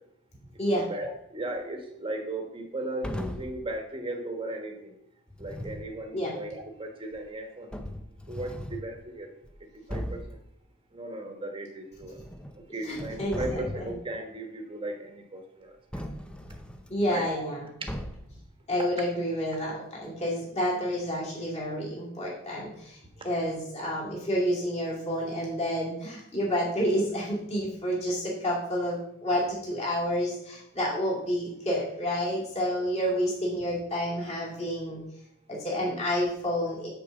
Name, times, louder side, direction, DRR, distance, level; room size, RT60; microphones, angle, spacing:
voice 1, 0.7-4.9 5.4-7.7 8.3-9.3 9.9-10.4 10.9-12.1 12.7-15.7 17.1-17.3 35.8-36.0, right 2 dB, 25° right, 3 dB, 1.3 m, -36 dB
sound 1, 3.0-3.6 5.3-5.9 7.1-7.2 7.7-8.9 9.4-9.5 9.9-10.4 11.9-12.6 12.9-14.0 15.9-16.9 17.9-18.4, equal, 5° left, 0.6 m, -37 dB
voice 2, 12.9-13.9 16.9-17.7 18.7-23.0 23.2-35.0 35.5-36.9, equal, 30° left, -5 dB, 2.6 m, -29 dB
6.8 x 5.0 x 7.0 m, 0.76 s
head